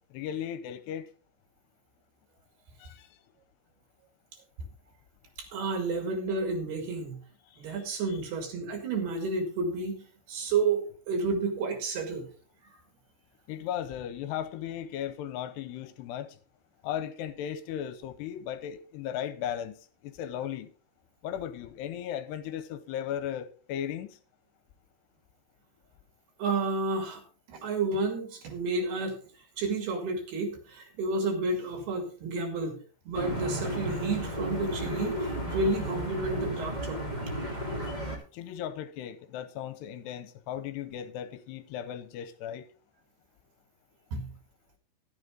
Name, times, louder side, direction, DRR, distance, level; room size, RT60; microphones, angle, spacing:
voice 1, 0.1-1.1 2.8-3.1 7.5-8.2 13.5-16.4 16.8-19.8 20.0-20.7 21.2-24.2 38.3-42.7, left 10 dB, 75° left, 2.8 m, -36 dB
voice 2, 5.5-7.2 7.6-12.3 26.4-27.2 27.5-29.2 29.6-32.8 33.1-37.2 44.1-44.3, right 3 dB, 65° right, 4.2 m, -31 dB
sound 1, 33.1-38.2, equal, 20° right, 1.3 m, -33 dB
12.0 x 11.0 x 3.8 m
omnidirectional pair, 5.1 m